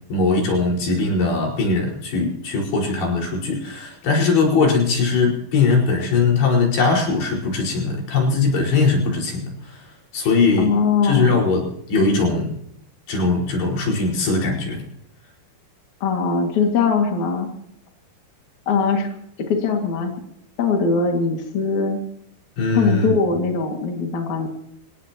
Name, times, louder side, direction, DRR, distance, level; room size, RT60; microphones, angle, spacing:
voice 1, 0.1-9.9 10.1-10.7 11.0-12.5 13.1-14.8 22.6-23.1, left 4 dB, 80° left, -2 dB, 7.2 m, -20 dB
voice 2, 10.6-11.4 16.0-17.5 18.7-19.1 19.5-20.1 20.6-22.0 22.7-24.5, left 5 dB, 50° left, 2 dB, 3.3 m, -21 dB
26.0 x 18.5 x 3.0 m, 0.75 s
omnidirectional pair, 4.7 m